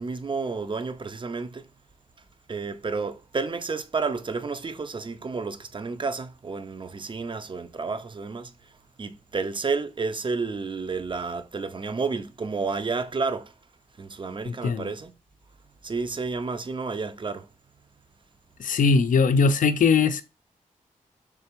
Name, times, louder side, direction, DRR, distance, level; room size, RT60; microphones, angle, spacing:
voice 1, 0.0-1.7 2.5-8.7 9.0-13.5 14.0-15.1 15.8-17.5, right 4 dB, 35° right, 0.5 m, -31 dB
voice 2, 14.5-14.9 18.6-20.2, left 5 dB, 65° left, 0.4 m, -20 dB
3.6 x 3.2 x 2.9 m
cardioid pair, 45°, 15 cm